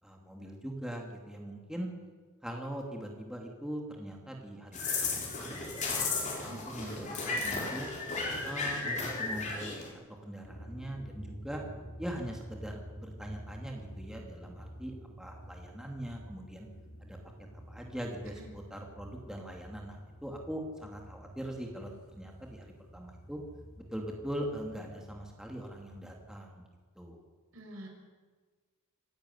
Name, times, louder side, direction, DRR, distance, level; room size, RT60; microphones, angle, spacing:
voice 1, 0.0-1.9 2.4-5.9 6.3-7.9 8.4-9.7 10.2-11.6 12.0-16.7 17.0-17.2 17.5-22.7 22.9-23.4 23.9-26.7 27.0-27.2, right 1 dB, 5° right, 0 dB, 2.7 m, -41 dB
sound 1, 4.7-9.9, left 3 dB, 35° left, 4.9 m, -34 dB
voice 2, 6.3-7.1 18.4-18.5 27.5-27.9, right 1 dB, 70° right, 1 dB, 5.9 m, -47 dB
sound 2, 10.4-26.4, equal, 70° left, 3.6 m, -49 dB
26.5 x 12.0 x 9.6 m, 1.4 s
head